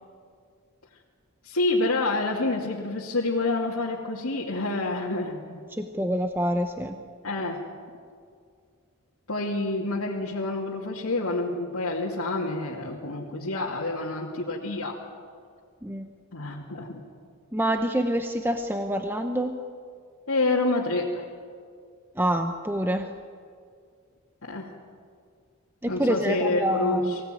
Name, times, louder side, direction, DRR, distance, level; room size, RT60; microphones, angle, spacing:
voice 1, 1.4-5.6 7.2-7.6 9.3-14.9 16.3-17.0 20.3-21.2 24.5-24.7 25.9-27.2, left 2 dB, 85° left, -5 dB, 2.6 m, -28 dB
voice 2, 5.7-6.9 15.8-16.1 17.5-19.5 22.2-23.1 25.8-27.1, equal, 10° right, 5 dB, 0.9 m, -26 dB
24.5 x 17.0 x 9.2 m, 2.2 s
head